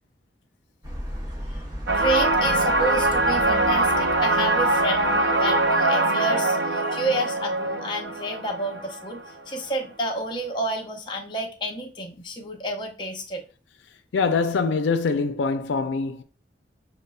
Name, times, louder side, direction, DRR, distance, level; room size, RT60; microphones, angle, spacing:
sound 1, 0.8-5.9, equal, 20° right, 0.8 m, -37 dB
voice 1, 1.9-13.4, right 1 dB, 25° left, 0.7 m, -29 dB
sound 2, 1.9-9.4, right 2 dB, 90° right, 0.5 m, -23 dB
voice 2, 14.1-16.2, left 4 dB, 85° left, 0.4 m, -24 dB
6.4 x 2.2 x 2.2 m
head